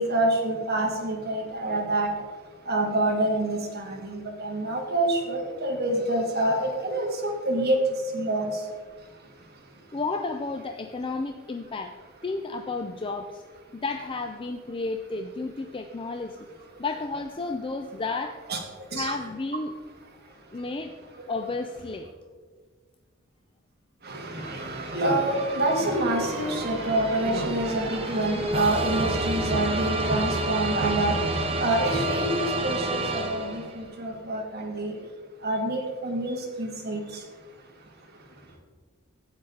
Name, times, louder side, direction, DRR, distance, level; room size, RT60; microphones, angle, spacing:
voice 1, 0.0-2.1 2.7-7.8 8.1-8.5 18.5-18.6 18.9-19.1 24.0-34.9 35.4-37.0, right 1 dB, 55° right, 0 dB, 2.2 m, -27 dB
voice 2, 9.9-12.0 12.2-13.4 13.7-16.4 16.8-18.4 18.9-19.7 20.5-20.9 21.3-22.1, left 3 dB, 25° left, 5 dB, 0.5 m, -32 dB
sound 1, 24.4-33.9, right 1 dB, 30° right, 1.2 m, -30 dB
12.5 x 8.8 x 3.9 m, 1.5 s
head